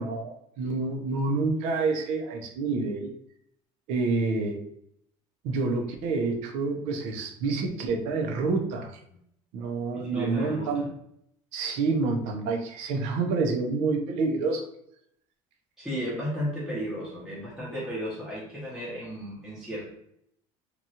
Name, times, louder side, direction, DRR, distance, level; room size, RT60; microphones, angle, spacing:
voice 1, 0.0-3.1 3.9-4.6 5.4-9.0 9.5-10.9 11.5-14.7, right 3 dB, 70° right, 3 dB, 0.6 m, -28 dB
voice 2, 9.9-10.9 15.8-20.0, equal, ahead, -8 dB, 0.7 m, -34 dB
2.9 x 2.3 x 2.7 m, 0.71 s
cardioid pair, 155°, 12 cm